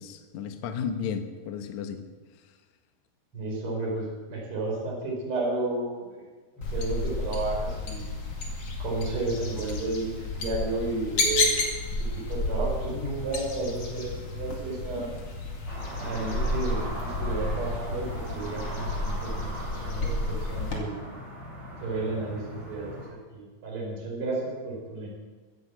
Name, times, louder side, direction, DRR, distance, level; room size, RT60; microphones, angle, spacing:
voice 1, 0.0-2.0, left 7 dB, 65° left, 7 dB, 2.0 m, -33 dB
voice 2, 3.3-6.2 6.7-8.0 8.8-11.6 12.1-15.1 16.0-21.0 21.8-25.1, right 2 dB, 35° right, -3 dB, 5.2 m, -32 dB
sound 1, 6.6-20.8, left 2 dB, 40° left, 2.8 m, -31 dB
sound 2, 15.7-23.1, right 1 dB, 5° left, 4.9 m, -39 dB
15.0 x 9.8 x 7.6 m, 1.4 s
omnidirectional pair, 4.5 m